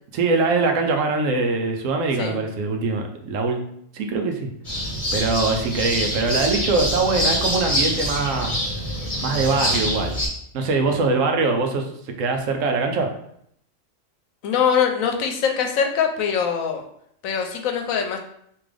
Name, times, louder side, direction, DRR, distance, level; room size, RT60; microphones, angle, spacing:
voice 1, 0.1-3.6 3.9-4.5 5.1-8.5 9.2-10.1 10.5-11.9 12.2-13.1, right 3 dB, 80° right, 4 dB, 1.0 m, -22 dB
sound 1, 4.6-10.3, equal, 30° left, 1.0 m, -25 dB
voice 2, 14.4-16.8 17.2-18.2, left 7 dB, 90° left, 4 dB, 1.0 m, -22 dB
3.6 x 2.9 x 3.3 m, 0.70 s
omnidirectional pair, 1.4 m